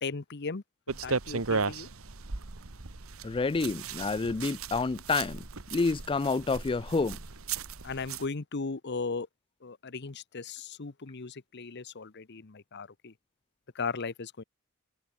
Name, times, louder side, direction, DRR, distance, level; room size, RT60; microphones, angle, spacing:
voice 1, 0.0-1.9 7.8-9.3 9.6-13.1 13.7-14.4, left 4 dB, 55° left, 0.9 m, -37 dB
sound 1, 0.9-8.3, right 4 dB, 80° right, 1.6 m, -36 dB
voice 2, 3.2-7.2, left 4 dB, 25° left, 0.4 m, -29 dB
head